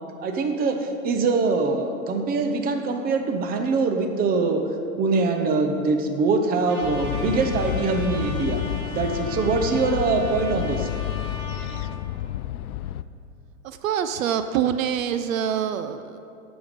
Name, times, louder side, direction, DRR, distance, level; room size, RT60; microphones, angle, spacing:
voice 1, 0.2-4.6 5.0-8.6 8.9-10.9, right 4 dB, 20° right, 5 dB, 0.8 m, -23 dB
Trumpet, 6.7-11.8, equal, 90° right, 2.2 m, -38 dB
sound 1, 6.8-13.0, left 12 dB, 75° left, 0.5 m, -30 dB
voice 2, 13.6-16.2, right 9 dB, 65° right, 10 dB, 0.6 m, -25 dB
10.5 x 7.1 x 5.1 m, 2.6 s
hypercardioid pair, 115°, 44 cm